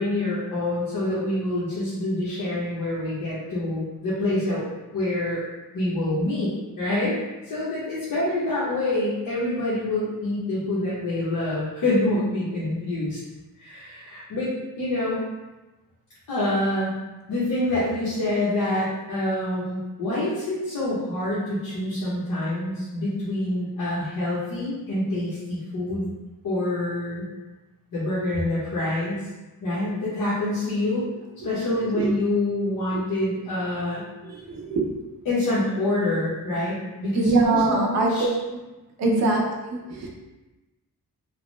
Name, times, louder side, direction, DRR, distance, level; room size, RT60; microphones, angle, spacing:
voice 1, 0.0-4.6 4.9-5.4 5.7-7.2 7.4-13.2 13.6-15.2 16.3-16.9 17.3-26.1 26.4-27.3 27.9-29.2 29.6-31.1 31.4-34.0 35.3-38.2 39.0-39.3, left 1 dB, 65° left, -9 dB, 0.8 m, -26 dB
voice 2, 34.2-35.0 37.2-38.3 39.0-40.1, right 3 dB, 50° right, -1 dB, 0.5 m, -23 dB
2.8 x 2.0 x 3.0 m, 1.1 s
wide cardioid pair, 175°, 35 cm